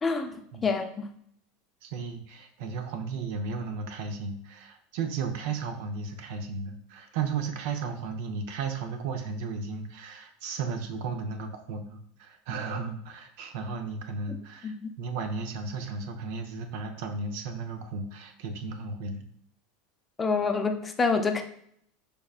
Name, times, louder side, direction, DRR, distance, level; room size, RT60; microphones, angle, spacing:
voice 1, 0.0-0.4 0.6-1.1 14.3-14.4 14.6-14.9 20.2-21.4, left 4 dB, 20° left, 5 dB, 0.5 m, -27 dB
voice 2, 1.8-19.3, right 4 dB, 70° right, 6 dB, 0.6 m, -34 dB
5.3 x 3.5 x 2.4 m, 0.68 s
supercardioid pair, 115°, 0 cm